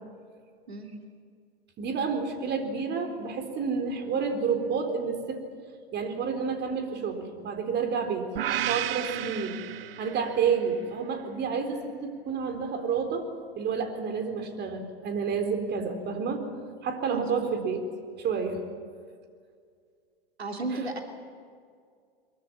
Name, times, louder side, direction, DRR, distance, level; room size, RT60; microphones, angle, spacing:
voice 1, 0.7-1.0 17.1-17.5 20.4-21.0, right 3 dB, 85° right, 4 dB, 3.0 m, -34 dB
voice 2, 1.8-5.4 5.9-9.6 10.0-13.3 13.6-16.5 16.8-17.8 18.2-18.6, right 5 dB, 35° right, 6 dB, 4.0 m, -29 dB
sound 1, 8.4-10.6, right 12 dB, 65° right, 1.1 m, -32 dB
23.0 x 22.5 x 8.7 m, 2.1 s
figure-of-eight pair, 95°, 31 cm